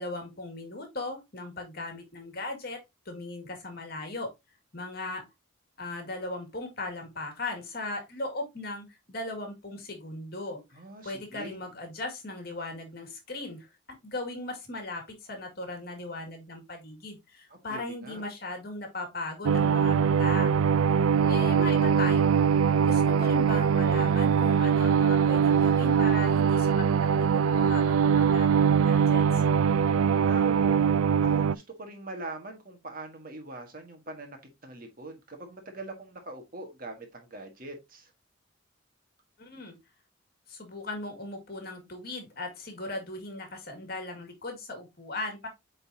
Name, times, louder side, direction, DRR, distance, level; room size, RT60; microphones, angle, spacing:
voice 1, 0.0-2.8 3.1-4.3 4.7-5.3 5.8-10.6 11.0-13.7 14.0-20.5 21.2-22.4 22.8-29.4 39.4-39.8 40.5-45.5, left 2 dB, 45° left, 2.1 m, -38 dB
voice 2, 10.7-11.6 17.5-18.2 30.3-34.4 34.6-38.1, right 2 dB, 40° right, 1.5 m, -42 dB
sound 1, 19.4-31.5, right 7 dB, 90° right, 0.4 m, -22 dB
8.6 x 3.9 x 2.8 m
head